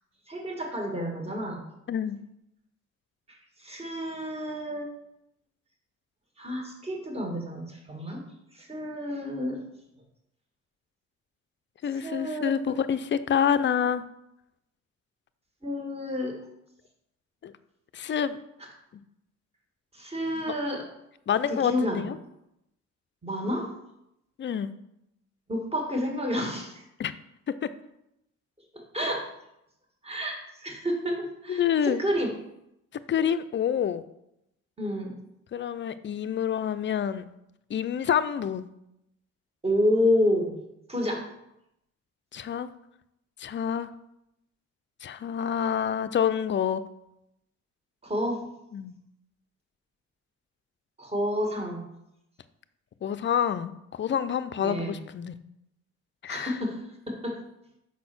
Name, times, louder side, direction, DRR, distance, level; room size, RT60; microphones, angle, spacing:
voice 1, 0.3-1.6 3.3-4.9 6.4-8.2 8.5-9.6 11.9-12.5 15.6-16.4 19.9-20.9 21.4-22.1 23.2-23.7 25.5-26.8 28.7-29.3 30.0-32.3 34.8-35.2 39.6-40.6 40.9-41.2 48.0-48.4 51.0-51.8 54.6-55.1 56.3-57.4, left 1 dB, 20° right, 1 dB, 1.9 m, -29 dB
voice 2, 11.8-14.0 17.4-17.5 17.9-18.4 21.3-22.2 24.4-24.7 27.0-27.1 27.6-27.7 31.5-32.0 33.1-34.0 35.5-37.3 37.7-38.7 42.3-42.7 43.4-43.9 45.0-46.8 48.7-48.9 53.0-55.3 56.2-56.5, left 8 dB, 40° left, 13 dB, 0.5 m, -27 dB
5.7 x 4.2 x 6.1 m, 0.84 s
cardioid pair, 90°, 30 cm